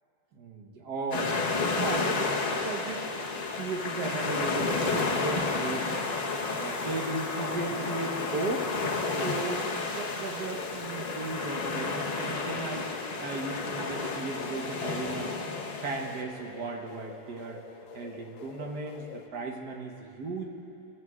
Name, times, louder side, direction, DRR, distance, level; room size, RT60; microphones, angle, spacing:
voice 1, 0.3-3.1 3.6-6.1 6.6-8.7 9.2-12.9 13.2-15.4 15.8-17.6 17.9-20.5, right 3 dB, 65° right, 1 dB, 1.7 m, -36 dB
sound 1, 1.1-16.2, left 3 dB, 60° left, 0.4 m, -31 dB
sound 2, 4.4-19.3, left 5 dB, 85° left, 1.3 m, -48 dB
26.5 x 12.5 x 2.4 m, 2.9 s
omnidirectional pair, 2.0 m